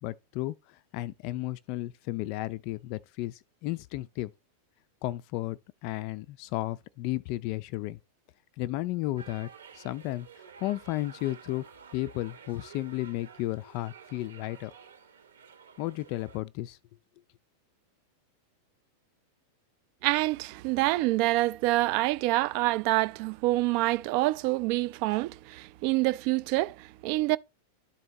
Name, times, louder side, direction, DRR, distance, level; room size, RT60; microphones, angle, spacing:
voice 1, 0.0-4.3 5.0-8.0 8.6-9.5 9.7-10.3 10.6-11.7 11.9-14.7 15.8-16.8, left 16 dB, 45° left, 0.3 m, -33 dB
sound 1, 9.2-16.4, right 6 dB, 70° right, 0.9 m, -51 dB
voice 2, 20.0-27.4, right 19 dB, 45° right, 0.3 m, -26 dB
12.0 x 4.2 x 2.9 m
figure-of-eight pair, 90°, 0 cm